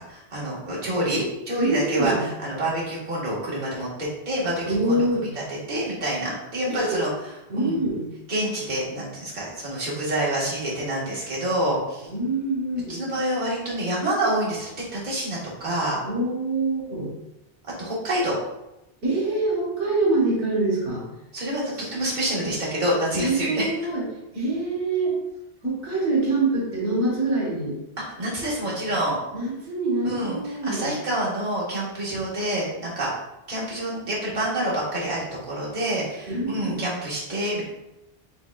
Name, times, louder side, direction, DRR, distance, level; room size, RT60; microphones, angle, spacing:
voice 1, 0.0-5.1 5.5-7.1 7.6-7.8 8.3-12.1 12.9-16.0 17.8-18.4 21.3-23.7 28.2-29.2 30.0-33.1 33.5-37.6, right 1 dB, 45° right, -7 dB, 1.5 m, -27 dB
voice 2, 1.6-2.2 4.7-5.3 6.7-7.0 7.5-8.1 12.0-13.0 16.0-17.1 19.0-21.0 21.7-22.0 23.2-24.1 24.3-25.2 25.6-27.8 28.6-28.8 29.3-30.9 36.3-36.8, right 2 dB, 90° right, -3 dB, 1.4 m, -25 dB
5.3 x 3.7 x 2.2 m, 0.92 s
omnidirectional pair, 1.1 m